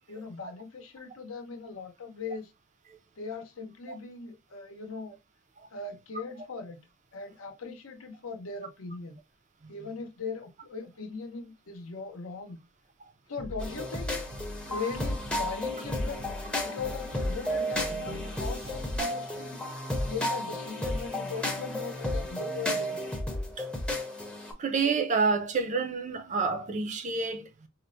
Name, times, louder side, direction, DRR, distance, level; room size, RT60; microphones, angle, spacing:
voice 1, 0.1-2.5 3.2-5.2 5.7-6.8 7.1-9.2 9.7-12.6 13.3-14.4 14.6-16.2 16.6-19.6 20.0-23.0, left 4 dB, 75° left, 0.7 m, -39 dB
Bass drum, 13.4-19.0, left 1 dB, 75° right, 0.9 m, -42 dB
sound 1, 13.6-24.5, left 1 dB, 5° left, 0.6 m, -33 dB
voice 2, 24.6-27.7, right 4 dB, 35° right, 0.4 m, -29 dB
4.3 x 2.1 x 2.5 m
head